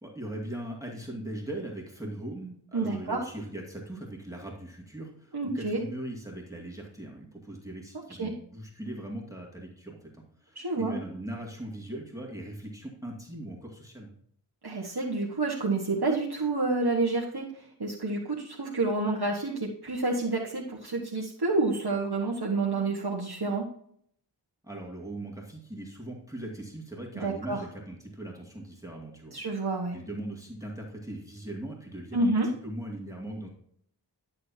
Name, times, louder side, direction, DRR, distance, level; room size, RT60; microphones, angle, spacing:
voice 1, 0.0-14.1 24.6-29.4 29.9-32.3 32.6-33.5, right 1 dB, 10° right, -1 dB, 2.2 m, -40 dB
voice 2, 2.7-3.3 5.3-5.8 8.2-8.3 10.5-10.9 14.6-23.6 27.1-27.6 29.3-30.0 32.1-32.5, right 3 dB, 60° right, -3 dB, 1.4 m, -29 dB
11.5 x 6.7 x 2.8 m, 0.64 s
wide cardioid pair, 40°, 44 cm